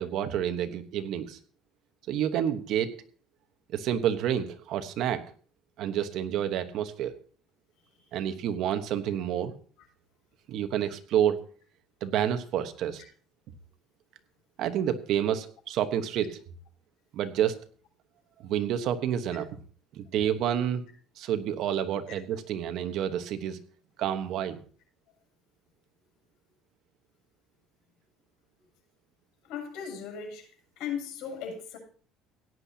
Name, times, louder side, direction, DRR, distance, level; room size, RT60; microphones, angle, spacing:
voice 1, 0.0-1.4 2.1-2.9 3.7-5.2 5.8-7.1 8.1-9.5 10.5-11.4 12.0-13.0 14.6-16.4 17.1-17.6 18.4-19.5 19.9-20.8 21.2-23.6 24.0-24.6, right 10 dB, 60° right, 9 dB, 1.1 m, -29 dB
voice 2, 29.5-30.5 30.8-31.8, left 7 dB, 75° left, 1 dB, 6.9 m, -37 dB
17.0 x 10.0 x 2.8 m, 0.44 s
cardioid pair, 135°, 0 cm